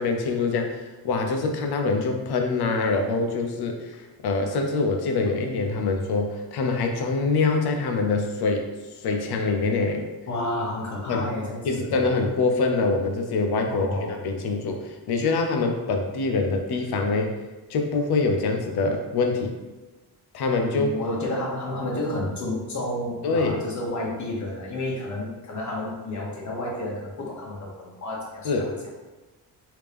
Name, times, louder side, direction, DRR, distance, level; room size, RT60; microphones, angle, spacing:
voice 1, 0.0-8.7 9.0-10.0 11.1-11.3 11.6-17.4 17.7-19.6 20.3-21.0 23.2-23.6 28.4-28.7, left 3 dB, 75° left, 4 dB, 0.7 m, -25 dB
voice 2, 10.3-11.9 13.7-14.1 20.7-28.9, left 1 dB, 50° left, -3 dB, 1.1 m, -31 dB
3.4 x 2.8 x 3.4 m, 1.1 s
cardioid pair, 105°, 39 cm